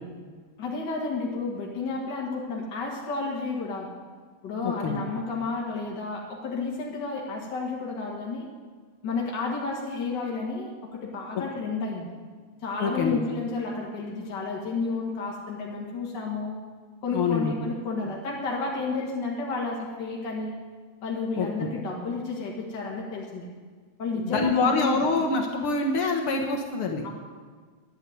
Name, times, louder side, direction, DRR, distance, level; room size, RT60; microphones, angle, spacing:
voice 1, 0.6-3.9 4.4-8.5 9.0-12.1 12.6-16.6 17.0-20.6 21.0-23.5 24.0-25.0 27.0-27.1, left 3 dB, 45° left, -2 dB, 1.6 m, -31 dB
voice 2, 4.6-5.0 12.8-13.2 17.1-17.5 21.4-21.7 24.2-27.0, left 4 dB, 65° left, 2 dB, 1.3 m, -25 dB
11.5 x 9.8 x 9.3 m, 1.5 s
omnidirectional pair, 4.2 m